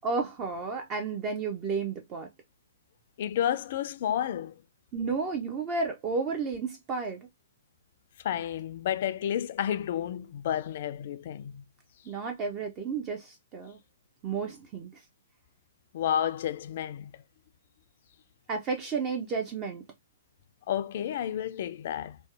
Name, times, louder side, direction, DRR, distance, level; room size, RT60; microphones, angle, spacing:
voice 1, 0.0-2.3 4.9-7.3 12.1-13.8 14.2-14.9 18.5-19.8, right 4 dB, 25° right, 0.5 m, -32 dB
voice 2, 3.2-4.6 8.2-11.6 15.9-17.2 20.7-22.2, left 10 dB, 50° left, 0.3 m, -31 dB
2.6 x 2.0 x 2.3 m
figure-of-eight pair, 120°, 0 cm